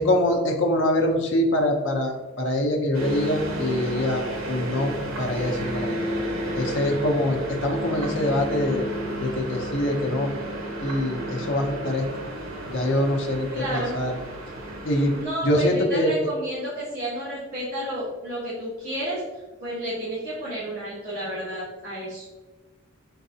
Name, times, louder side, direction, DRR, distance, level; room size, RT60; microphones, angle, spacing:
voice 1, 0.0-6.0 6.6-8.8 9.2-10.3 10.8-12.1 12.7-14.2 14.8-15.1 15.4-16.1, left 1 dB, 60° left, 2 dB, 0.7 m, -24 dB
sound 1, 2.9-15.2, right 1 dB, 80° right, 1.1 m, -32 dB
voice 2, 13.5-14.0 15.1-19.2 19.6-22.2, equal, 45° right, -11 dB, 1.3 m, -31 dB
4.6 x 4.0 x 2.7 m, 1.2 s
head